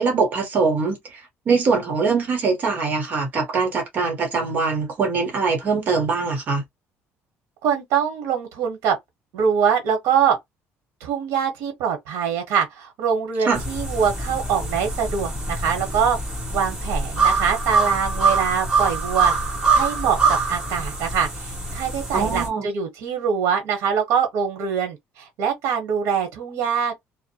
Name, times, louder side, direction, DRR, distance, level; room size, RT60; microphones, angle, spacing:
voice 1, 0.0-6.6 13.4-13.6 22.1-22.7, right 4 dB, 35° right, 1.0 m, -22 dB
voice 2, 7.6-9.0 9.3-10.4 11.0-16.2 16.5-19.3 19.7-27.0, right 7 dB, 85° right, 0.9 m, -23 dB
sound 1, 13.5-22.5, right 4 dB, 15° right, 1.0 m, -24 dB
2.6 x 2.0 x 2.7 m
cardioid pair, 165°, 5 cm